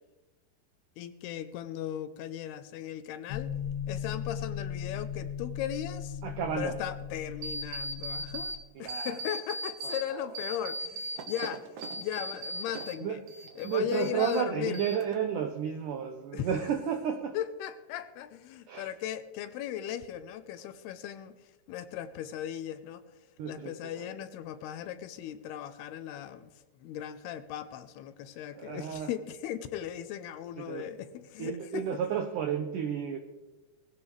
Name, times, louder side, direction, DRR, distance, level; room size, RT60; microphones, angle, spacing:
voice 1, 1.0-3.5 3.9-6.2 6.6-11.7 12.0-13.2 13.6-14.8 16.3-16.5 17.3-21.3 21.7-23.0 23.5-26.5 26.8-31.9, left 10 dB, 80° left, 11 dB, 2.6 m, -37 dB
sound 1, 3.3-8.5, left 8 dB, 60° left, 2.3 m, -37 dB
voice 2, 6.2-6.8 8.8-9.3 9.8-10.4 13.0-13.2 13.6-17.4 18.7-18.9 23.4-24.3 28.5-29.1 30.6-30.9 31.4-33.2, right 8 dB, 80° right, 6 dB, 1.8 m, -32 dB
sound 2, 7.4-8.6 8.9-10.0 10.4-13.0 13.3-14.4 14.7-15.4, right 1 dB, 65° right, 2.2 m, -38 dB
20.0 x 16.0 x 3.3 m, 1.1 s
omnidirectional pair, 4.8 m